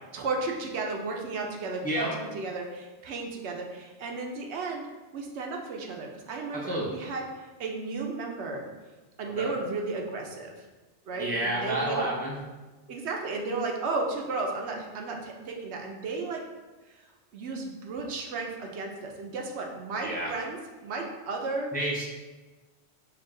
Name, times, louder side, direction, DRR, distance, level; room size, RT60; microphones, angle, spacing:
voice 1, 0.1-4.8 5.1-7.2 7.6-8.6 9.2-10.7 11.1-12.1 12.9-16.4 17.3-21.7, right 3 dB, 75° right, 1 dB, 0.9 m, -34 dB
voice 2, 6.5-6.9 9.4-9.5 11.2-12.4 20.0-20.3 21.7-22.0, right 1 dB, 10° left, -5 dB, 0.5 m, -29 dB
4.6 x 2.5 x 3.7 m, 1.2 s
omnidirectional pair, 1.2 m